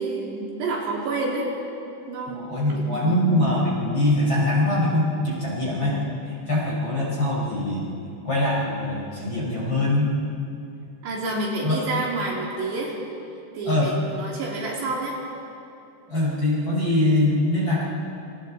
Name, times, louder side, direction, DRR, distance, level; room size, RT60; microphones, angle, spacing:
voice 1, 0.0-1.5 2.1-3.3 5.8-6.2 9.8-9.9 11.0-13.0 13.5-15.2, right 2 dB, 60° right, -3 dB, 4.7 m, -29 dB
voice 2, 2.3-6.0 6.5-7.9 8.2-10.1 11.6-11.8 13.7-13.9 16.1-17.8, left 1 dB, 25° left, -5 dB, 4.7 m, -23 dB
28.0 x 26.0 x 4.2 m, 2.7 s
omnidirectional pair, 5.6 m